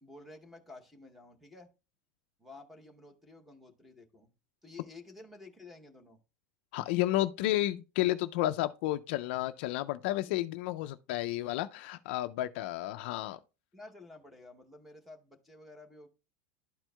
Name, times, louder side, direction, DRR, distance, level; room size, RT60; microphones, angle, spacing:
voice 1, 0.0-1.7 2.4-4.3 4.6-6.2 13.7-16.1, left 2 dB, ahead, 0.8 m, -52 dB
voice 2, 6.7-13.4, left 15 dB, 50° left, 0.3 m, -31 dB
11.5 x 4.5 x 2.2 m
supercardioid pair, 175°, 7 cm